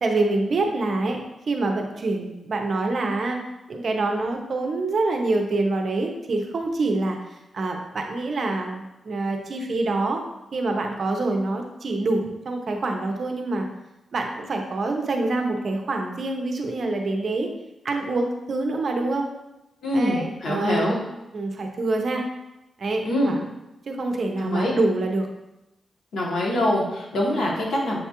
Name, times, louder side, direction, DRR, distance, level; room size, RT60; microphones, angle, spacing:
voice 1, 0.0-3.4 3.7-7.2 7.5-10.2 10.5-13.7 14.1-17.5 17.8-19.3 19.9-21.0 21.3-22.2 22.8-23.4 23.9-25.3, right 2 dB, 45° right, 3 dB, 0.5 m, -26 dB
voice 2, 19.8-21.0 23.0-23.3 24.4-24.7 26.1-28.0, left 1 dB, 85° left, -3 dB, 1.1 m, -24 dB
6.4 x 2.3 x 2.8 m, 0.93 s
wide cardioid pair, 180°, 0 cm